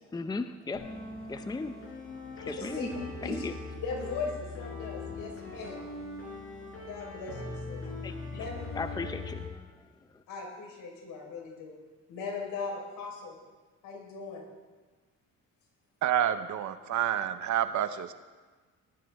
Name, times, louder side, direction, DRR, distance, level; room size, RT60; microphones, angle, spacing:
voice 1, 0.1-0.9 1.3-1.8 2.3-2.9 3.2-3.6 8.0-8.2 8.7-9.5 9.8-9.9 10.1-10.2, left 3 dB, 10° left, 9 dB, 0.6 m, -36 dB
sound 1, 0.7-9.5, left 3 dB, 45° left, 4.7 m, -41 dB
voice 2, 2.4-2.9 3.2-3.4 3.8-5.9 6.9-7.8 8.3-8.7 10.3-11.7 12.1-13.3 13.8-14.4, left 4 dB, 75° left, 0 dB, 4.6 m, -38 dB
voice 3, 16.0-18.1, right 10 dB, 60° right, 11 dB, 1.0 m, -28 dB
19.5 x 12.0 x 3.6 m, 1.3 s
cardioid pair, 90°, 33 cm